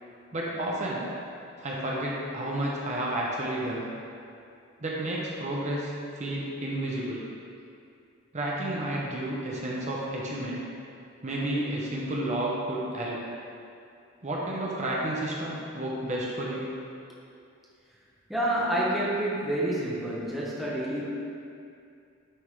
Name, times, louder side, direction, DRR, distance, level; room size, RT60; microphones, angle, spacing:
voice 1, 0.3-1.1 1.6-3.9 4.8-7.3 8.3-10.7 11.2-13.2 14.2-16.7, right 1 dB, 35° right, -4 dB, 0.8 m, -31 dB
voice 2, 18.3-21.0, right 1 dB, ahead, -7 dB, 0.8 m, -28 dB
9.7 x 3.6 x 3.2 m, 2.5 s
head